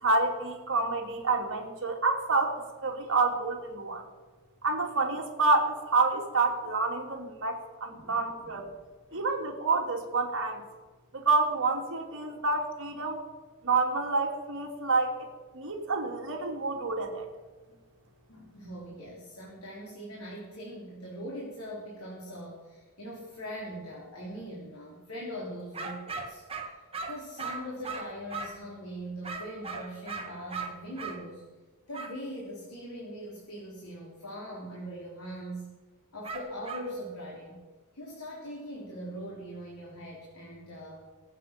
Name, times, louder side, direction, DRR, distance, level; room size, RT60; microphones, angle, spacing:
voice 1, 0.0-4.0 4.6-8.6 9.1-10.6 11.1-13.2 13.6-15.3 15.5-17.2, right 3 dB, 60° right, 1 dB, 3.0 m, -28 dB
voice 2, 7.9-8.6 9.1-9.3 18.3-26.8 27.1-31.4 31.9-35.7 36.1-37.6 37.9-41.1, equal, 70° left, -3 dB, 3.6 m, -41 dB
sound 1, 25.7-28.7 29.2-31.2 31.9-32.2 36.2-36.9, right 4 dB, 25° right, 1.9 m, -38 dB
24.0 x 8.4 x 6.0 m, 1.3 s
head